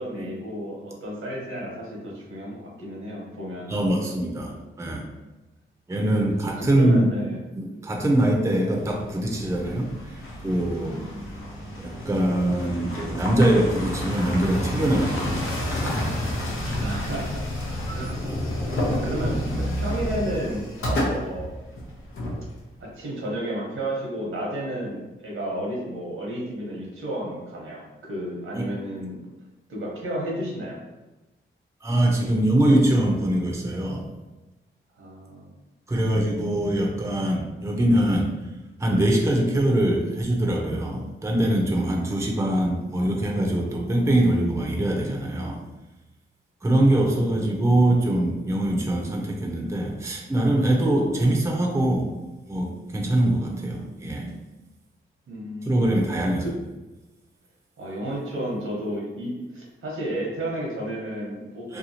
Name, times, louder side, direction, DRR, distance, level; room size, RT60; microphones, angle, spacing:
voice 1, 0.0-3.7 6.4-7.4 16.7-17.5 17.9-21.5 22.8-29.2 29.7-30.8 32.1-32.3 35.0-35.5 55.3-55.9 56.4-56.6 57.8-61.8, right 1 dB, 80° right, -3 dB, 0.9 m, -32 dB
voice 2, 3.7-5.0 5.9-7.1 7.5-11.1 11.8-15.3 15.7-15.9 21.0-21.1 28.5-28.7 31.8-34.0 35.9-38.3 38.8-45.6 46.6-52.2 52.5-54.3 55.6-56.5 61.7-61.8, right 1 dB, 15° right, -1 dB, 0.5 m, -23 dB
sound 1, 8.7-22.9, left 1 dB, 85° left, 0.7 m, -30 dB
2.8 x 2.3 x 2.7 m, 1.1 s
cardioid pair, 70°, 21 cm